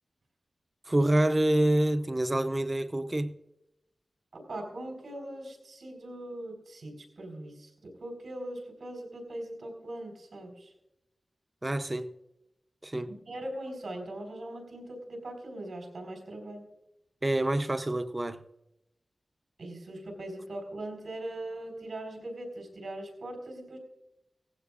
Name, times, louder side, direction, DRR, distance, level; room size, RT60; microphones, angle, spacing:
voice 1, 0.9-3.3 11.6-12.1 12.8-13.1 17.2-18.4, right 1 dB, 25° right, 0.6 m, -27 dB
voice 2, 4.3-10.7 13.3-16.6 19.6-23.8, right 1 dB, 80° right, 4.3 m, -40 dB
17.5 x 15.5 x 2.5 m
wide cardioid pair, 110°, 0 cm